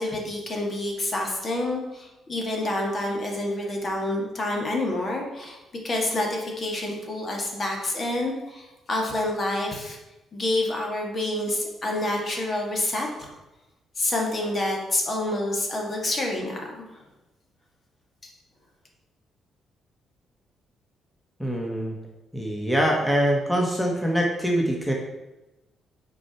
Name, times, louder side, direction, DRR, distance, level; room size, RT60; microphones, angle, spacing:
voice 1, 0.0-5.6 5.8-10.0 10.3-13.3 14.0-16.7 18.2-18.3, left 1 dB, 40° left, 0 dB, 1.8 m, -28 dB
voice 2, 21.4-21.9 22.3-24.9, equal, 5° left, -1 dB, 1.4 m, -24 dB
6.1 x 4.7 x 5.8 m, 1.0 s
cardioid pair, 90°, 0 cm